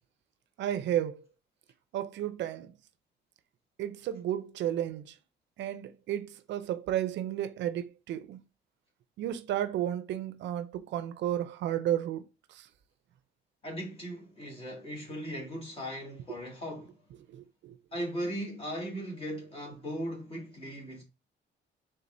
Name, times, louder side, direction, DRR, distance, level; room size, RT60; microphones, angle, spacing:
voice 1, 0.6-1.2 1.9-2.7 3.8-5.1 5.6-8.4 9.2-12.2 12.5-12.7 17.3-17.8, right 11 dB, 75° right, 0.5 m, -33 dB
voice 2, 13.6-17.0 17.9-21.0, equal, 30° left, 2.1 m, -38 dB
4.1 x 3.8 x 2.6 m
cardioid pair, 115°, 19 cm